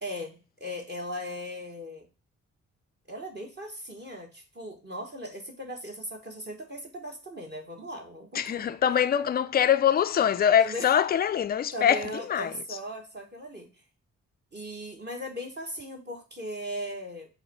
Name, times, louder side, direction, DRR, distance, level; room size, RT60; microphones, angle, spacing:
voice 1, 0.0-2.1 3.1-8.6 10.6-10.9 11.7-13.7 14.5-17.3, equal, 30° right, 1.2 m, -38 dB
voice 2, 8.3-12.8, left 9 dB, 30° left, 0.4 m, -24 dB
4.6 x 2.3 x 4.1 m
hypercardioid pair, 40°, 34 cm